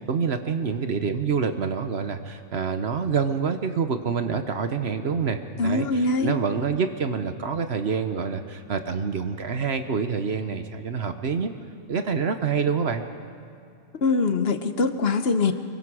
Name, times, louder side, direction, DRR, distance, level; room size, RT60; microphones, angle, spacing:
voice 1, 0.0-11.5 11.9-13.0, right 6 dB, 55° right, 8 dB, 1.1 m, -27 dB
voice 2, 5.6-6.4 14.0-15.5, left 3 dB, 55° left, 9 dB, 1.1 m, -23 dB
24.5 x 22.5 x 4.9 m, 2.4 s
omnidirectional pair, 1.4 m